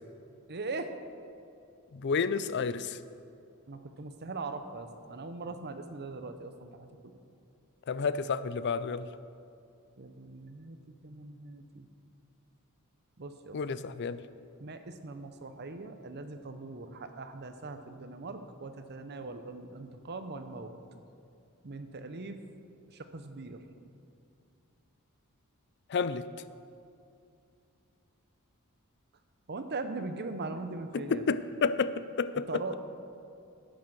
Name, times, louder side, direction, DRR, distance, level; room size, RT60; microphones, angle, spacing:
voice 1, 0.5-0.9 3.7-7.1 10.0-10.8 11.0-11.9 13.2-13.6 14.6-20.7 21.6-22.4 22.9-23.6 29.5-31.2 32.5-32.7, right 3 dB, 50° right, 8 dB, 0.8 m, -40 dB
voice 2, 1.9-3.0 7.9-9.1 13.5-14.2 25.9-26.3 30.9-32.7, left 5 dB, 55° left, 14 dB, 0.4 m, -30 dB
11.5 x 8.5 x 6.1 m, 2.6 s
head